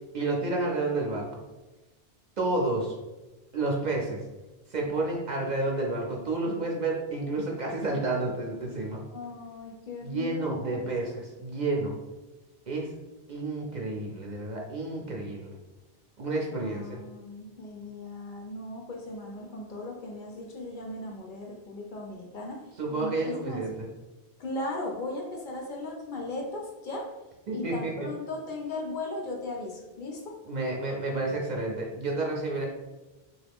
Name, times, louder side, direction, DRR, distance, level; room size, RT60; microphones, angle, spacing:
voice 1, 0.1-1.4 2.4-2.9 3.5-4.2 4.7-9.0 10.0-11.9 12.7-12.9 13.3-15.5 16.2-17.0 22.8-23.9 27.5-28.1 30.5-32.7, right 2 dB, 55° right, -1 dB, 0.6 m, -30 dB
voice 2, 9.1-11.1 16.5-23.6 24.4-27.2 27.5-30.4, left 2 dB, 60° left, 0 dB, 0.7 m, -37 dB
3.1 x 2.4 x 3.4 m, 1.1 s
omnidirectional pair, 1.1 m